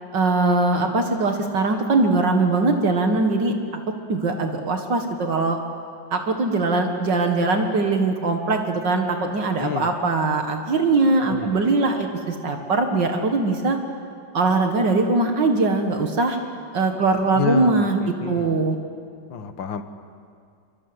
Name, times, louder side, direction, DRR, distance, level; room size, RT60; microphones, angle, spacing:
voice 1, 0.1-3.5 4.1-5.6 6.1-13.8 14.3-16.4 16.7-18.0 18.3-18.8, right 3 dB, 70° right, 4 dB, 2.4 m, -21 dB
voice 2, 11.3-11.7 17.4-18.5 19.3-19.8, left 8 dB, 90° left, 9 dB, 2.0 m, -29 dB
27.0 x 24.5 x 8.1 m, 2.2 s
omnidirectional pair, 2.0 m